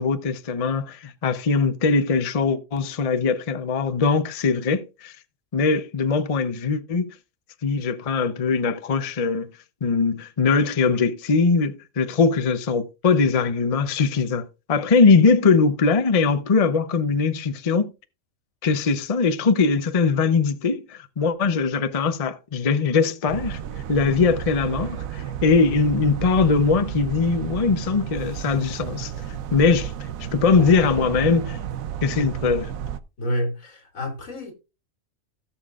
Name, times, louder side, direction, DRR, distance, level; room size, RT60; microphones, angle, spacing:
voice 1, 0.0-5.1 5.5-7.0 7.6-9.5 9.8-17.9 18.6-23.6 23.9-29.9 30.3-31.6 32.0-32.7, left 4 dB, 35° left, 0.7 m, -21 dB
sound 1, 23.3-33.0, right 10 dB, 90° right, 1.1 m, -32 dB
voice 2, 33.2-34.5, equal, 85° left, 3.0 m, -28 dB
17.0 x 7.2 x 2.4 m
omnidirectional pair, 1.4 m